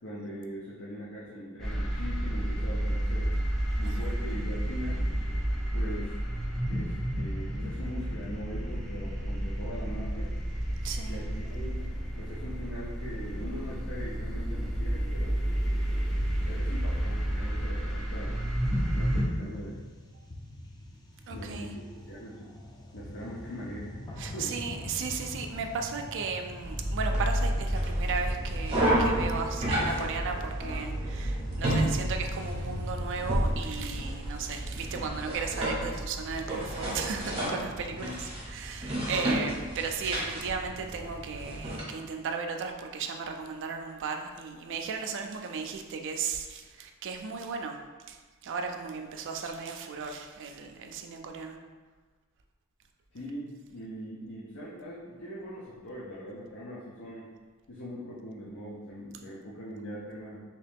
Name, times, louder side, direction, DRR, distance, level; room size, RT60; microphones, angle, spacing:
voice 1, 0.0-3.4 3.8-5.1 5.7-6.2 6.7-10.3 11.0-11.9 12.2-15.4 16.5-18.4 18.9-19.8 21.3-22.5 22.9-24.0 24.3-24.5 37.9-38.2 53.1-57.3 57.7-60.4, equal, 55° left, -7 dB, 0.6 m, -41 dB
sound 1, 1.6-19.2, equal, ahead, 0.8 m, -31 dB
voice 2, 3.8-4.1 10.8-11.2 21.3-21.7 24.2-47.8 48.1-51.6, right 5 dB, 60° right, 4 dB, 0.4 m, -35 dB
Atmosphere Bombshelter (Loop), 16.1-34.1, left 1 dB, 20° left, 0.3 m, -44 dB
Living room - Filling up the stove with some wood, 26.6-41.8, right 1 dB, 25° right, 1.0 m, -31 dB
3.2 x 2.9 x 3.4 m, 1.4 s
head